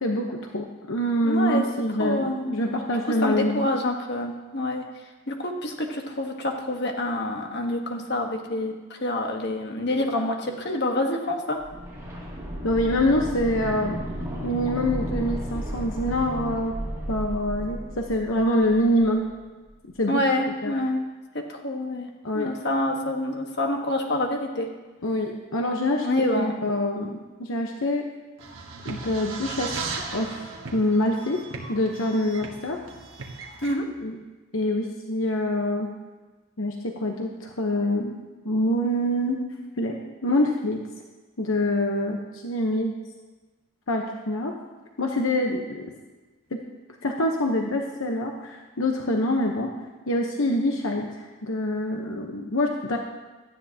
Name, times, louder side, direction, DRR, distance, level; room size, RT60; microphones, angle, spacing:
voice 1, 0.0-3.7 12.6-14.0 14.4-16.7 17.1-19.2 20.0-20.2 20.6-20.7 22.2-22.5 25.0-28.0 28.8-30.4 30.7-31.4 31.7-32.8 34.0-34.2 34.5-35.9 36.6-39.4 39.8-40.8 41.4-42.9 43.9-44.5 45.0-45.9 46.5-46.6 47.0-49.7 50.1-53.0, left 1 dB, 70° left, 1 dB, 1.0 m, -25 dB
voice 2, 1.2-1.6 2.0-2.8 3.2-4.8 5.3-11.6 20.1-21.0 21.3-22.1 22.3-24.7 26.0-26.5 33.6-33.8, left 1 dB, 50° left, 2 dB, 1.4 m, -27 dB
sound 1, 11.6-19.4 19.7-19.8, equal, 15° right, 2.4 m, -33 dB
sound 2, 28.4-33.8, right 4 dB, 65° right, 1.4 m, -37 dB
17.0 x 12.5 x 2.9 m, 1.2 s
head